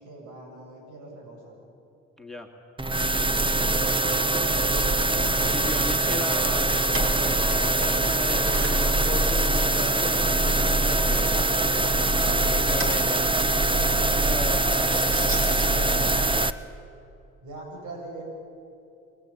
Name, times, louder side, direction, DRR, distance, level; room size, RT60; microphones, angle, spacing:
voice 1, 0.0-1.6 14.3-14.6 17.4-18.2, right 2 dB, 80° right, 0 dB, 7.4 m, -43 dB
voice 2, 2.2-2.5 5.4-11.6 12.0-13.3 13.6-16.4, left 2 dB, ahead, 3 dB, 2.4 m, -37 dB
sound 1, 2.8-16.5, right 2 dB, 15° right, 1.0 m, -23 dB
Keys jangling, 6.4-8.2 8.5-10.1 10.5-11.3 12.0-15.7, right 1 dB, 45° right, 5.5 m, -38 dB
29.5 x 21.5 x 8.9 m, 2.8 s
cardioid pair, 90°, 30 cm